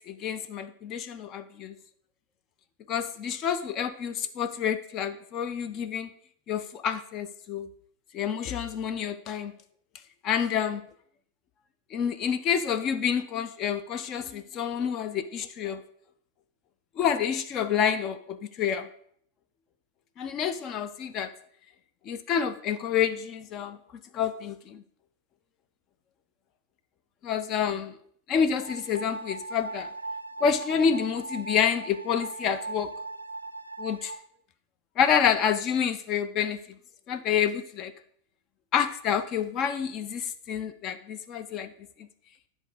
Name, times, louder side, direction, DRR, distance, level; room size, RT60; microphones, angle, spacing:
voice 1, 0.1-1.8 2.9-6.1 6.5-7.7 8.1-9.5 10.2-10.8 11.9-15.8 17.0-18.9 20.2-21.3 22.1-23.8 24.1-24.8 27.2-28.0 28.3-29.9 30.4-32.9 33.8-34.2 35.0-36.6 37.1-37.9 38.7-41.7, left 7 dB, 35° left, 11 dB, 0.4 m, -28 dB
sound 1, 28.6-34.2, right 3 dB, 85° right, 0.4 m, -39 dB
10.5 x 3.6 x 5.0 m, 0.64 s
figure-of-eight pair, 90°, 0 cm